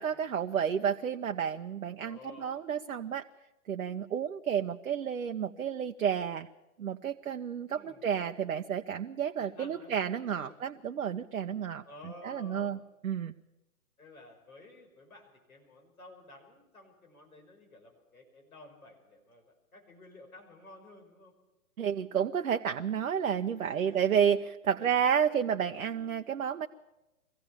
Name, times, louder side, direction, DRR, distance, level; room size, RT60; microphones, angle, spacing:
voice 1, 0.0-3.3 3.7-6.5 6.8-12.8 13.0-13.3 21.8-26.7, right 8 dB, 70° right, 5 dB, 0.9 m, -31 dB
voice 2, 0.6-1.0 2.0-2.5 7.7-8.1 9.4-10.0 10.4-10.6 11.9-12.7 14.0-21.3 23.6-24.1 24.8-25.0, left 2 dB, 70° left, 3 dB, 6.0 m, -53 dB
23.0 x 16.0 x 7.2 m, 1.0 s
figure-of-eight pair, 125°, 44 cm